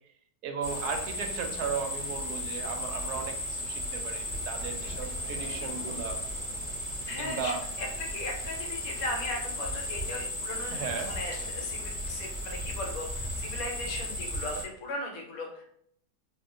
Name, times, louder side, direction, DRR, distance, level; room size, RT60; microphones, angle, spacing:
voice 1, 0.4-6.2 7.2-7.6 10.7-11.1, right 5 dB, 90° right, 5 dB, 1.1 m, -36 dB
sound 1, 0.6-14.6, left 1 dB, 10° left, 0.8 m, -35 dB
Sliding door, 4.4-7.4, left 1 dB, 20° right, 0.5 m, -48 dB
voice 2, 7.1-15.7, left 1 dB, 70° left, 2 dB, 1.1 m, -38 dB
2.7 x 2.3 x 3.7 m, 0.67 s
omnidirectional pair, 1.6 m